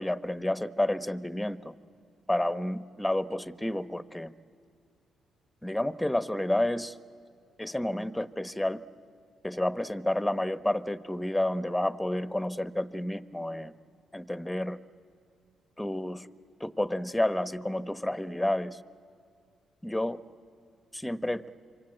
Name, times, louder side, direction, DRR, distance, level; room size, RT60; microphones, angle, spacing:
voice 1, 0.0-1.7 2.3-4.3 5.6-6.9 7.6-8.8 9.4-13.7 14.1-14.8 15.8-16.3 16.6-18.8 19.8-20.2 20.9-21.5, left 1 dB, 10° left, 12 dB, 1.0 m, -30 dB
26.5 x 24.0 x 8.9 m, 2.2 s
supercardioid pair, 65°, 0 cm